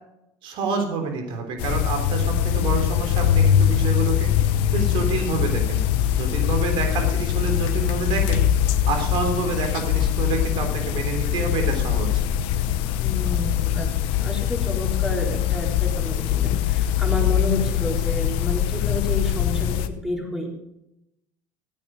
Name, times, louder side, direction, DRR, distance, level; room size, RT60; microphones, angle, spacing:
voice 1, 0.4-5.8 6.2-12.2, right 4 dB, 65° right, 4 dB, 3.6 m, -28 dB
sound 1, 1.6-19.9, left 10 dB, 75° left, 0.9 m, -22 dB
voice 2, 2.5-2.9 6.7-6.9 13.0-20.5, left 1 dB, 5° right, -1 dB, 3.9 m, -30 dB
14.5 x 9.0 x 5.1 m, 0.85 s
supercardioid pair, 105°, 9 cm